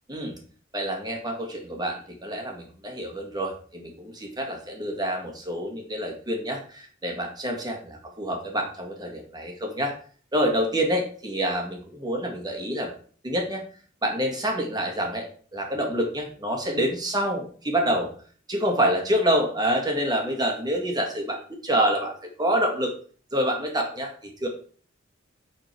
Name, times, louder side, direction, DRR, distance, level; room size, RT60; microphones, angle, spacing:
voice 1, 0.7-9.9 10.3-12.9 13.2-13.6 14.0-15.3 15.5-18.1 18.5-22.9 23.3-24.5, equal, 20° right, 2 dB, 2.0 m, -27 dB
8.6 x 4.3 x 4.5 m, 0.44 s
head